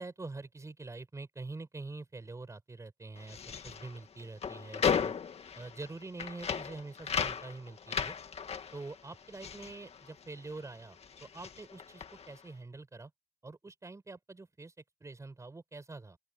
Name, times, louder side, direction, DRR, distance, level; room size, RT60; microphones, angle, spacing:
voice 1, 0.0-5.1 5.5-8.2 8.7-13.1 13.4-14.7 15.0-16.2, right 3 dB, 15° right, 6.9 m, -45 dB
sound 1, 3.2-10.7 10.9-12.4, left 7 dB, 35° left, 2.1 m, -36 dB
open air
cardioid pair, 110°, 17 cm